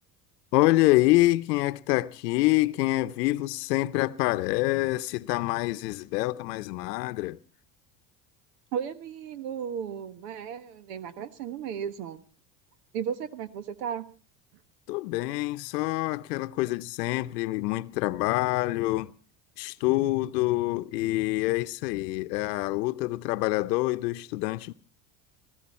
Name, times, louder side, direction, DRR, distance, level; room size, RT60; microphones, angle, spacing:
voice 1, 0.5-7.4 14.9-19.1 19.6-24.7, left 19 dB, 90° left, 0.8 m, -26 dB
voice 2, 8.7-12.2 12.9-14.1, right 8 dB, 85° right, 1.5 m, -34 dB
20.5 x 14.5 x 4.3 m
supercardioid pair, 85°, 47 cm